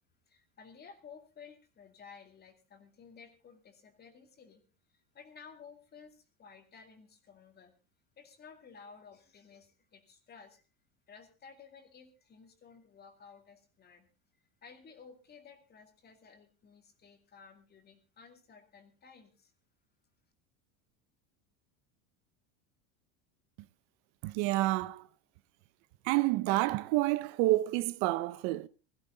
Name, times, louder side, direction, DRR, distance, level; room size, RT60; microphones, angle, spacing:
voice 1, 0.3-4.6 4.9-7.7 8.2-10.6 11.1-14.1 14.6-19.5, left 6 dB, 25° left, 2.5 m, -55 dB
voice 2, 24.2-25.1 26.0-28.7, right 18 dB, 60° right, 0.7 m, -29 dB
16.5 x 15.0 x 3.9 m
supercardioid pair, 145°, 38 cm